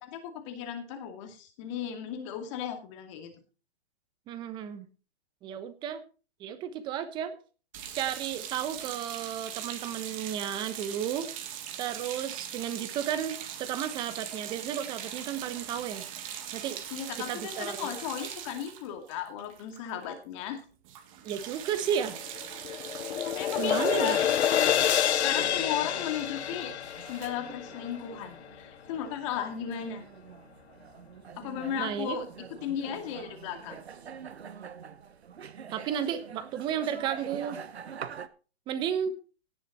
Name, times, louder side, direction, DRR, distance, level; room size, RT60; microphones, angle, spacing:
voice 1, 0.0-3.3 16.9-20.6 23.1-24.7 25.2-26.7 27.1-30.0 31.4-32.3 32.6-33.8, left 9 dB, 30° left, 6 dB, 2.3 m, -35 dB
voice 2, 4.3-4.9 5.4-6.0 6.4-7.3 7.9-11.3 11.8-16.0 16.5-16.8 17.3-17.9 21.2-22.2 23.6-24.2 31.8-32.2 35.7-37.6 38.7-39.1, right 9 dB, 15° right, 11 dB, 1.0 m, -33 dB
sound 1, 7.7-20.1 20.4-20.6 20.8-27.3, right 10 dB, 30° right, 1.9 m, -41 dB
sound 2, 22.1-28.5, left 10 dB, 90° left, 0.5 m, -28 dB
sound 3, 25.4-38.3, right 7 dB, 75° right, 1.2 m, -46 dB
17.5 x 6.9 x 4.2 m, 0.36 s
hypercardioid pair, 150°, 32 cm